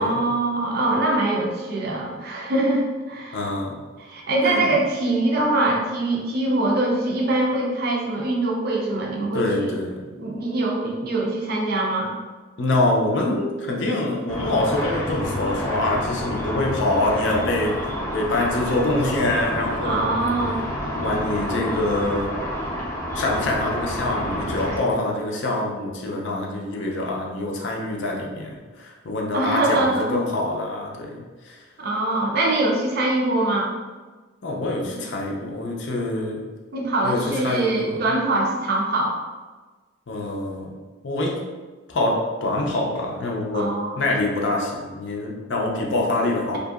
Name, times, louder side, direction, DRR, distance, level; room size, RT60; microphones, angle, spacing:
voice 1, 0.0-3.4 4.0-9.8 10.2-12.1 19.8-20.6 29.3-30.2 31.8-33.7 36.7-39.2 43.5-43.9, right 2 dB, 50° right, -2 dB, 0.5 m, -23 dB
voice 2, 3.3-3.8 4.4-4.8 9.3-10.0 12.6-17.8 18.1-20.1 20.9-22.4 23.1-31.6 34.4-36.4 37.0-38.0 40.1-40.7 41.0-41.4 41.9-46.6, left 2 dB, 60° left, -1 dB, 0.5 m, -25 dB
Car / Traffic noise roadway noise / Engine, 14.3-24.8, equal, 10° left, 0.6 m, -29 dB
2.8 x 2.6 x 2.4 m, 1.3 s
head